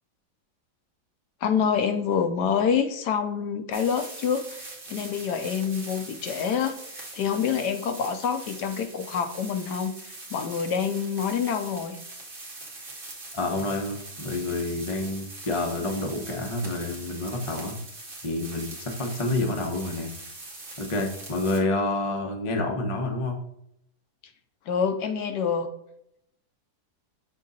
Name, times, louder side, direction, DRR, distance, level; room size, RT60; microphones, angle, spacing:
voice 1, 1.4-12.0 24.7-25.7, left 7 dB, 75° left, 8 dB, 1.2 m, -27 dB
sound 1, 3.7-21.6, right 2 dB, 30° right, 1.6 m, -42 dB
voice 2, 13.3-17.8 18.2-20.1 20.8-23.4, left 2 dB, 30° left, 2 dB, 0.6 m, -28 dB
6.3 x 3.7 x 4.0 m, 0.77 s
omnidirectional pair, 1.9 m